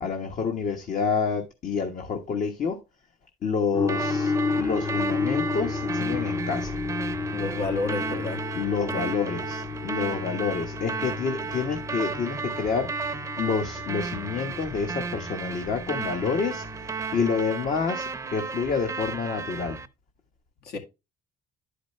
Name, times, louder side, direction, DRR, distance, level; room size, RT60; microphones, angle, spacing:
voice 1, 0.0-2.8 3.4-6.7 8.5-16.8 17.1-19.8, left 5 dB, 50° left, 1.3 m, -28 dB
sound 1, 3.7-17.4, left 4 dB, 25° left, 0.6 m, -32 dB
sound 2, 3.9-19.9, right 5 dB, 15° right, 0.7 m, -34 dB
voice 2, 7.3-8.4 8.9-9.1 20.6-20.8, left 3 dB, 70° left, 2.0 m, -30 dB
11.0 x 5.0 x 3.2 m
cardioid pair, 110°, 17 cm